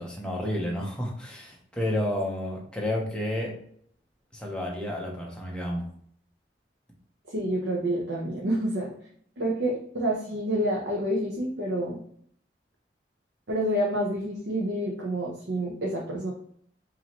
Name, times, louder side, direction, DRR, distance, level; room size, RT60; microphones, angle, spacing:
voice 1, 0.0-3.5 4.3-5.9, left 1 dB, 5° left, -2 dB, 0.9 m, -31 dB
voice 2, 7.3-8.9 9.4-12.0 13.5-16.3, right 1 dB, 90° right, -3 dB, 0.9 m, -28 dB
4.9 x 2.9 x 3.0 m, 0.62 s
head